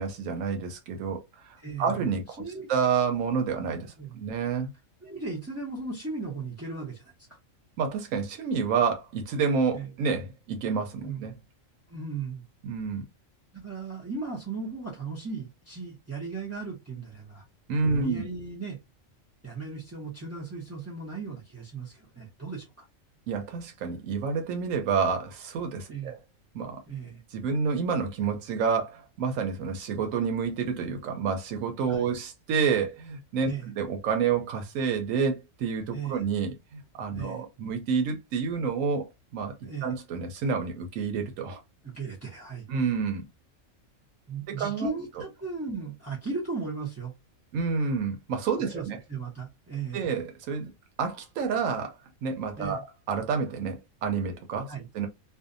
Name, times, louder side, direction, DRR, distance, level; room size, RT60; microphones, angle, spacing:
voice 1, 0.0-2.4 2.7-4.7 7.8-11.3 12.6-13.0 17.7-18.2 23.3-26.2 26.5-26.8 27.3-39.5 39.8-41.6 42.7-43.2 44.5-44.9 47.5-49.0 49.9-50.7 51.0-55.1, right 5 dB, 90° right, 1.0 m, -29 dB
voice 2, 1.6-2.0 2.4-2.7 4.0-4.2 5.0-7.1 9.7-9.9 11.0-11.2 11.9-12.4 13.5-17.4 17.9-18.8 19.4-22.9 25.9-26.1 26.9-27.2 31.9-32.2 33.4-33.7 35.9-36.2 37.1-37.4 39.6-40.0 41.8-42.7 44.3-47.1 48.6-50.1 52.6-52.8 54.7-54.9, right 4 dB, 25° right, 0.3 m, -36 dB
2.6 x 2.1 x 2.5 m
omnidirectional pair, 1.4 m